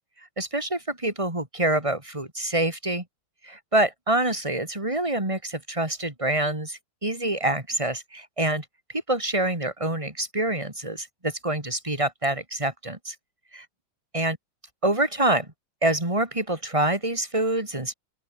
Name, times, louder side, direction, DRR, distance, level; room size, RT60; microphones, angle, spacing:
voice 1, 0.4-3.0 3.4-8.6 9.1-13.1 13.5-13.7 14.1-14.4 14.8-15.5 15.8-17.9, right 1 dB, 15° right, 4.0 m, -26 dB
open air
omnidirectional pair, 2.3 m